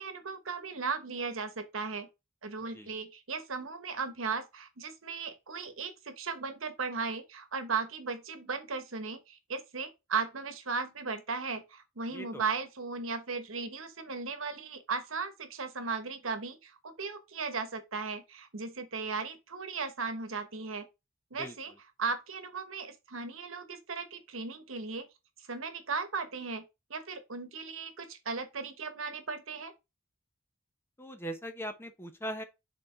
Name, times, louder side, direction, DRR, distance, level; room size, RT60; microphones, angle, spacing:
voice 1, 0.0-2.1 2.4-20.9 21.3-21.7 22.0-25.1 25.4-26.6 26.9-29.7, right 4 dB, 75° right, 1.1 m, -36 dB
voice 2, 12.1-12.4 21.4-21.6 31.0-32.4, equal, 10° left, 0.8 m, -40 dB
6.5 x 3.8 x 3.8 m
head